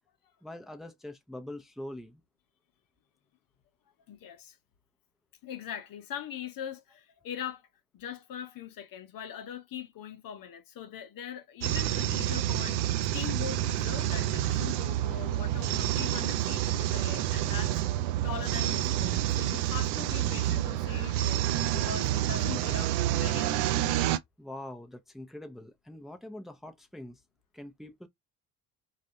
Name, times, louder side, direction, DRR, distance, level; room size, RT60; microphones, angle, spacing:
voice 1, 0.4-2.2 24.4-27.2 27.5-28.1, left 1 dB, ahead, 0.7 m, -43 dB
voice 2, 4.1-4.6 5.4-7.6 7.9-12.8 13.1-17.8 18.2-21.5 21.7-23.6, left 9 dB, 55° left, 0.9 m, -41 dB
sound 1, 11.6-24.2, right 13 dB, 75° right, 0.6 m, -28 dB
3.2 x 2.5 x 2.6 m
hypercardioid pair, 60°, 42 cm